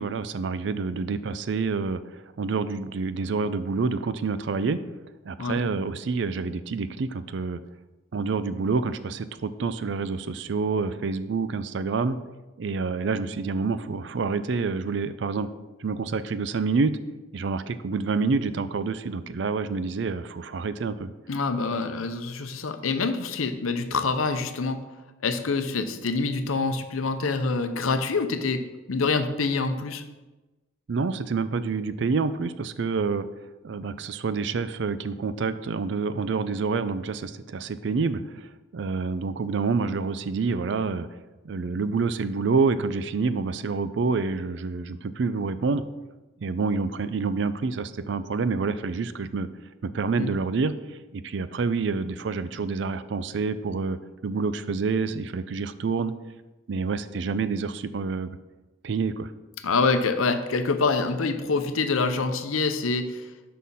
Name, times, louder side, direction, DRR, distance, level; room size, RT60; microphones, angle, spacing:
voice 1, 0.0-2.0 2.4-4.8 5.3-7.6 8.1-12.2 12.6-15.5 15.8-17.0 17.3-21.1 30.9-33.3 33.6-38.5 38.7-41.1 41.4-45.8 46.4-49.5 49.8-50.7 51.1-56.1 56.7-58.3 58.8-59.3, right 4 dB, 60° right, 13 dB, 0.4 m, -27 dB
voice 2, 21.3-24.8 25.2-28.6 28.9-30.0 50.2-50.3 59.6-63.2, left 4 dB, 85° left, 8 dB, 0.7 m, -26 dB
6.3 x 5.6 x 5.4 m, 1.1 s
head